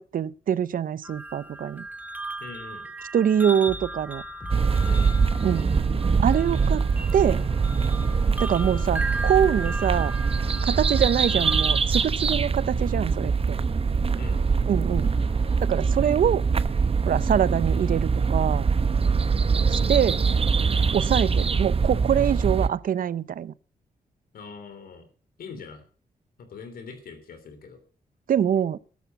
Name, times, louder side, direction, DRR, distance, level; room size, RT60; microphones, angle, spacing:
voice 1, 0.0-1.9 3.1-4.2 5.4-5.7 6.2-6.8 7.1-7.4 8.4-10.1 10.7-13.6 14.7-15.1 15.6-16.4 17.1-18.7 19.7-20.2 20.9-23.5 28.3-28.8, right 9 dB, 70° right, 0.6 m, -24 dB
sound 1, 1.0-11.8, right 2 dB, 10° right, 1.9 m, -37 dB
voice 2, 2.4-2.9 4.8-5.1 14.2-14.4 24.3-25.0 25.4-25.8 26.4-27.8, left 5 dB, 85° left, 3.3 m, -42 dB
sound 2, 3.7-15.7, left 1 dB, 30° left, 2.3 m, -42 dB
sound 3, 4.5-22.7, right 5 dB, 40° right, 0.8 m, -23 dB
13.5 x 11.0 x 5.7 m
cardioid pair, 70°, 15 cm